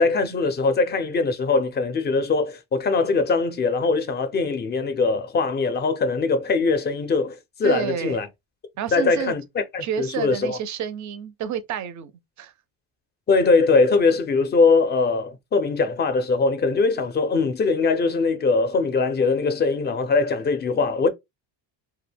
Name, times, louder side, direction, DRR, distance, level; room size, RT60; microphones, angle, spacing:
voice 1, 0.0-8.3 8.9-9.4 9.7-10.6 13.3-21.1, left 4 dB, 25° left, 0.4 m, -21 dB
voice 2, 7.6-8.2 8.8-9.3 9.8-12.1 12.4-12.5, right 9 dB, 40° right, 0.4 m, -29 dB
2.2 x 2.2 x 3.3 m
cardioid pair, 110°, 48 cm